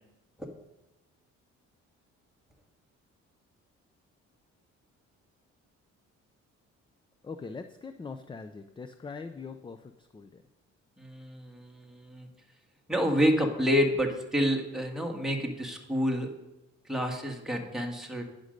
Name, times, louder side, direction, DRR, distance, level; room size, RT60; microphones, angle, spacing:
voice 1, 7.2-10.4, left 4 dB, 15° left, 9 dB, 0.4 m, -42 dB
voice 2, 11.0-12.3 12.9-16.3 16.9-18.2, equal, ahead, 1 dB, 1.6 m, -28 dB
9.7 x 5.2 x 6.4 m, 0.97 s
cardioid pair, 90°, 30 cm